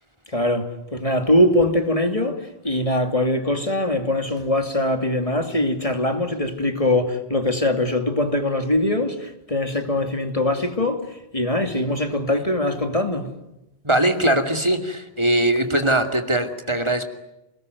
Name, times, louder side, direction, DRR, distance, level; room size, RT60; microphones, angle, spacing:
voice 1, 0.3-13.3, left 1 dB, 35° left, 2.7 m, -22 dB
voice 2, 13.8-17.0, right 1 dB, 25° right, 2.6 m, -21 dB
29.0 x 20.0 x 9.4 m
omnidirectional pair, 1.1 m